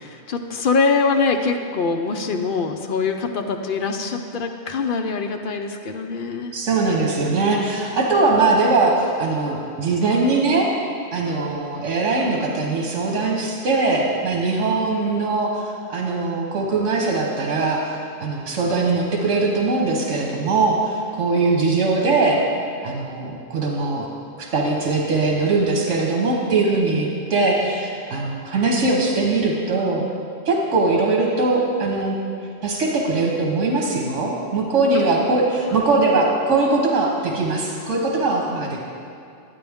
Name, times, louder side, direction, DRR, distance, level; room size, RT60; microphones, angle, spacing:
voice 1, 0.0-6.5 8.3-8.4, left 4 dB, 55° left, 4 dB, 0.7 m, -23 dB
voice 2, 6.5-10.7 11.1-22.4 22.8-24.1 24.4-30.0 30.4-32.2 32.6-38.8, right 3 dB, 85° right, -1 dB, 1.4 m, -21 dB
11.0 x 9.1 x 3.5 m, 2.4 s
omnidirectional pair, 1.3 m